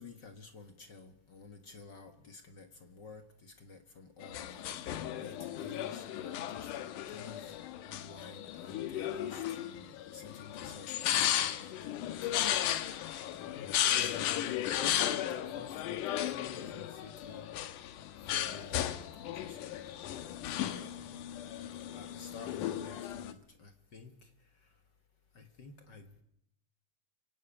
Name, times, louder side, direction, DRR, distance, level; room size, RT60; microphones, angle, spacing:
voice 1, 0.0-6.7 7.1-7.5 7.8-12.5 14.0-17.5 18.2-19.9 20.6-21.1 21.9-24.7 25.3-26.2, left 4 dB, 45° left, 1.6 m, -52 dB
sound 1, 4.2-23.3, left 11 dB, 85° left, 2.7 m, -35 dB
24.5 x 17.0 x 9.0 m
omnidirectional pair, 3.5 m